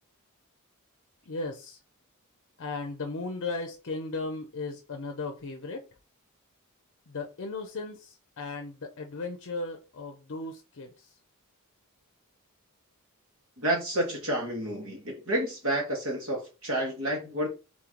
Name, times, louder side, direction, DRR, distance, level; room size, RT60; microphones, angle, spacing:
voice 1, 1.3-1.8 2.6-5.8 7.1-11.1, left 3 dB, 60° left, 0.6 m, -36 dB
voice 2, 13.6-17.5, right 1 dB, 65° right, 1.7 m, -30 dB
3.7 x 3.0 x 3.8 m
head